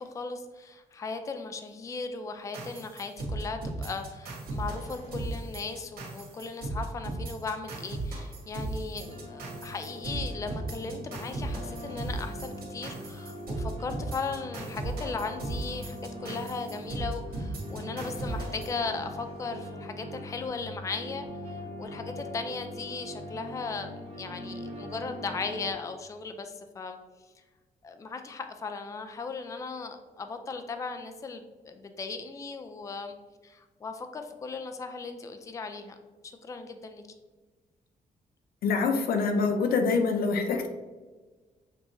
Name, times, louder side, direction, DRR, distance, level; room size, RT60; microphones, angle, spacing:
voice 1, 0.0-27.0 27.8-33.2 33.4-36.0 36.2-37.0, left 4 dB, 20° left, 7 dB, 0.3 m, -37 dB
sound 1, 2.5-19.4, right 2 dB, 85° right, 1.4 m, -37 dB
sound 2, 9.0-25.7, left 1 dB, 45° right, 1.0 m, -41 dB
voice 2, 38.6-40.7, left 4 dB, 85° left, 5 dB, 0.6 m, -25 dB
6.6 x 2.9 x 2.6 m, 1.3 s
cardioid pair, 125°, 15 cm